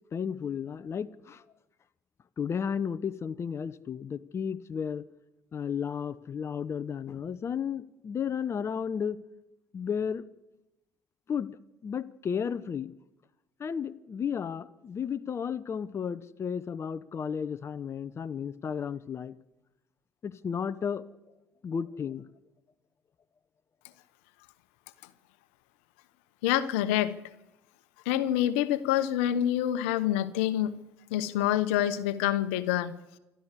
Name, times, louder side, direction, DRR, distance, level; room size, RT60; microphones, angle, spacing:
voice 1, 0.1-1.4 2.4-5.0 5.5-9.2 9.7-10.2 11.3-11.5 11.8-12.9 13.6-19.3 20.2-21.0 21.6-22.2, left 7 dB, 40° left, 15 dB, 0.9 m, -33 dB
voice 2, 26.4-27.2 28.0-30.8 31.1-33.0, left 12 dB, 85° left, 14 dB, 1.0 m, -27 dB
28.5 x 13.0 x 8.3 m, 1.0 s
supercardioid pair, 70°, 7 cm